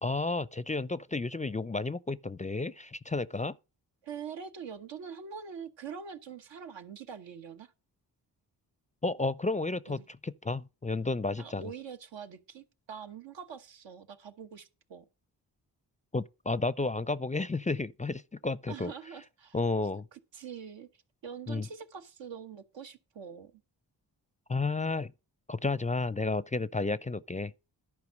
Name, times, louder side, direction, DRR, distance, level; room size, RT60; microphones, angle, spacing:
voice 1, 0.0-3.6 9.0-11.7 16.1-18.9 19.5-20.1 21.5-21.7 24.5-25.1 25.5-27.5, left 3 dB, 15° left, 0.5 m, -32 dB
voice 2, 4.0-7.7 9.9-10.0 11.4-15.1 18.7-19.6 20.1-20.9 21.2-23.6, right 7 dB, 80° right, 1.2 m, -44 dB
11.0 x 4.8 x 6.3 m
supercardioid pair, 40°, 44 cm